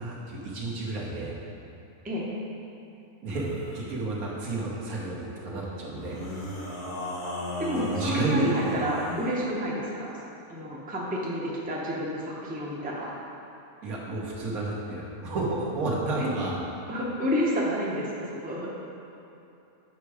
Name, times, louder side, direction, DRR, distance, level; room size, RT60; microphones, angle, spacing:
voice 1, 0.0-1.4 3.2-3.5 3.7-6.2 7.8-8.5 13.8-16.6, right 2 dB, 75° right, -4 dB, 1.6 m, -31 dB
sound 1, 3.3-3.8 5.9-9.4, left 1 dB, 90° left, 1.7 m, -35 dB
voice 2, 7.6-10.2 10.5-13.1 16.2-16.3 16.9-18.7, equal, 10° right, -5 dB, 0.7 m, -30 dB
7.5 x 4.6 x 4.9 m, 2.8 s
omnidirectional pair, 1.6 m